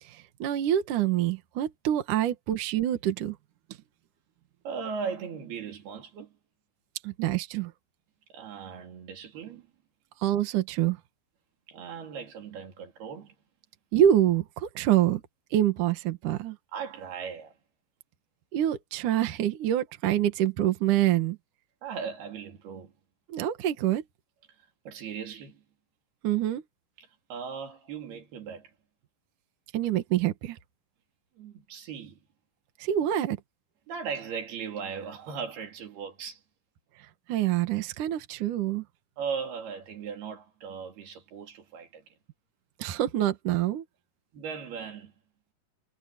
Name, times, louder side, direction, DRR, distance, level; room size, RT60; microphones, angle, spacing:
voice 1, 0.0-3.4 7.0-7.7 10.2-11.0 13.9-15.2 15.5-16.6 18.5-21.4 23.3-24.0 26.2-26.6 29.7-30.6 32.8-33.4 37.0-38.8 42.8-43.8, right 11 dB, 60° right, 2.8 m, -26 dB
voice 2, 4.7-6.4 8.3-9.7 11.7-13.4 16.7-17.6 21.8-22.9 24.9-25.6 27.0-28.7 31.4-32.2 33.9-36.4 39.2-42.2 44.3-45.1, right 6 dB, 80° right, 5.1 m, -38 dB
omnidirectional pair, 4.4 m